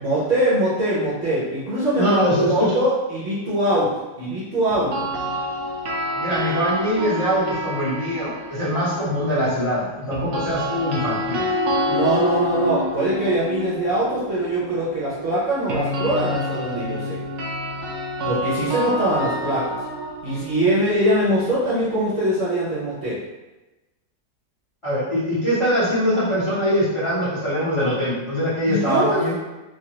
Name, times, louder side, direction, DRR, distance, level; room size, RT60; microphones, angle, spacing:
voice 1, 0.0-2.2 2.5-3.9 4.2-5.1 11.9-17.2 18.2-19.8 20.2-23.2 28.7-29.2, right 1 dB, 60° right, -8 dB, 0.9 m, -22 dB
voice 2, 1.9-2.8 6.1-11.4 24.8-29.3, equal, 30° left, -10 dB, 0.5 m, -22 dB
sound 1, 4.7-8.9 10.1-22.0, equal, 90° right, 0.6 m, -28 dB
3.3 x 2.2 x 2.8 m, 1.1 s
omnidirectional pair, 1.9 m